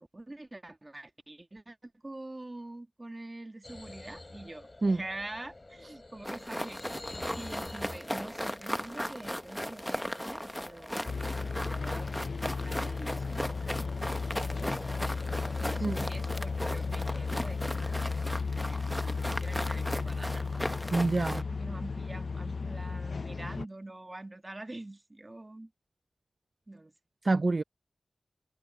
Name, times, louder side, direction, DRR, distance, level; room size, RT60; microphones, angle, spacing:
voice 1, 0.0-7.0 7.3-11.1 11.6-13.5 14.1-15.1 15.6-20.5 21.2-25.7 26.7-26.9, right 2 dB, 30° right, 1.4 m, -45 dB
sound 1, 3.6-18.3, left 2 dB, 35° left, 4.5 m, -49 dB
sound 2, 6.2-21.4, equal, 5° left, 1.0 m, -37 dB
sound 3, 11.1-23.6, left 4 dB, 65° left, 0.4 m, -34 dB
voice 2, 20.9-21.4 27.2-27.6, right 3 dB, 45° right, 0.5 m, -27 dB
wide cardioid pair, 60°, 0 cm